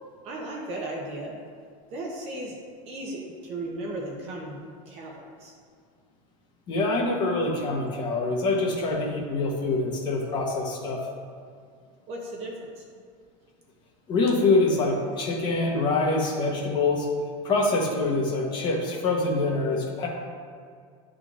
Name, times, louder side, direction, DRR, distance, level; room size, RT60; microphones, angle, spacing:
voice 1, 0.2-1.4 1.9-2.5 2.9-4.6 4.9-5.5 12.1-12.8, right 1 dB, 40° right, -1 dB, 0.8 m, -35 dB
voice 2, 6.7-11.0 14.1-17.1 17.4-20.1, left 3 dB, 25° left, -2 dB, 1.0 m, -25 dB
10.0 x 3.8 x 2.4 m, 2.1 s
supercardioid pair, 160°, 17 cm